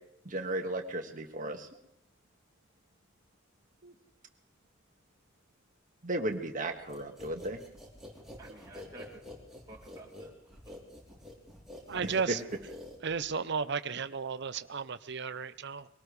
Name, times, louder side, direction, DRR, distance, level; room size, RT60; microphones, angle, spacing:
voice 1, 0.3-1.7 3.8-3.9 6.0-7.6, right 1 dB, 40° right, 3 dB, 1.9 m, -35 dB
sound 1, 6.9-13.4, left 1 dB, ahead, 3.4 m, -48 dB
voice 2, 8.4-9.2 9.7-10.3 10.6-10.8 11.9-12.5, right 2 dB, 20° right, -5 dB, 2.9 m, -50 dB
voice 3, 11.9-12.4 13.0-15.9, right 5 dB, 60° right, 14 dB, 0.7 m, -34 dB
22.5 x 18.0 x 3.3 m, 0.76 s
head